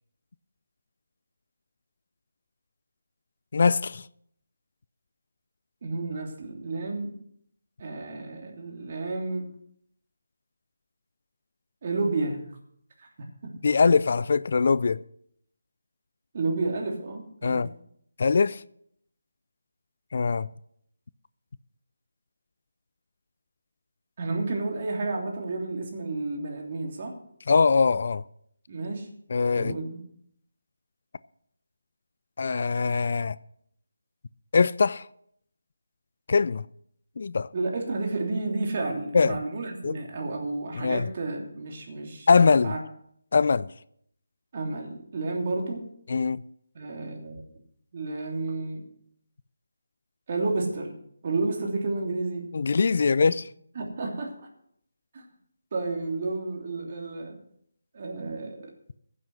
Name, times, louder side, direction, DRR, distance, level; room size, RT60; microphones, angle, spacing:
voice 1, 3.5-4.0 13.6-15.0 17.4-17.7 18.2-18.6 20.1-20.5 27.5-28.2 29.3-29.7 32.4-33.4 34.5-35.0 36.3-36.6 37.2-37.5 39.1-39.4 39.8-40.0 40.7-41.1 42.3-42.7 43.3-43.7 46.1-46.4 52.5-53.4, left 4 dB, 50° left, 0.4 m, -22 dB
voice 2, 5.8-7.1 7.8-9.5 11.8-12.4 13.0-13.1 13.4-13.5 16.3-17.6 24.2-27.1 28.7-29.1 29.6-30.0 37.5-42.3 42.6-42.8 44.5-45.8 46.7-47.4 47.9-48.9 50.3-50.9 51.2-52.5 53.7-54.3 55.1-55.2 55.7-57.3 57.9-58.7, right 3 dB, 40° right, 3.1 m, -31 dB
15.5 x 7.5 x 6.3 m
figure-of-eight pair, 165°, 0 cm